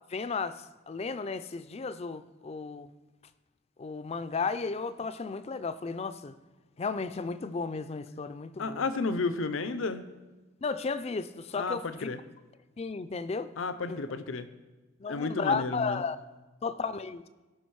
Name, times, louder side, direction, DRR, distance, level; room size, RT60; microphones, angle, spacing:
voice 1, 0.1-2.9 3.8-6.3 6.8-8.9 10.6-12.1 12.8-13.5 13.9-14.0 15.0-16.2 16.6-17.3, left 4 dB, 30° left, 14 dB, 0.4 m, -34 dB
voice 2, 8.6-10.1 11.5-12.2 13.6-14.5 15.1-16.0, left 3 dB, 75° left, 12 dB, 0.6 m, -32 dB
17.0 x 6.2 x 4.7 m, 1.2 s
head